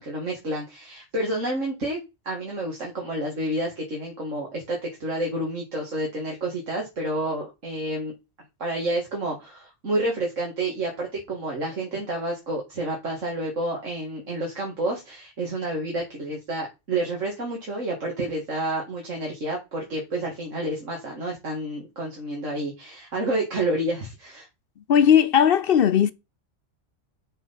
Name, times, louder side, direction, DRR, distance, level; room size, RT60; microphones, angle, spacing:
voice 1, 0.0-8.1 8.6-24.5, right 1 dB, 80° right, 2.5 m, -29 dB
voice 2, 24.9-26.1, left 8 dB, 55° left, 0.8 m, -17 dB
7.4 x 7.1 x 5.7 m
omnidirectional pair, 1.3 m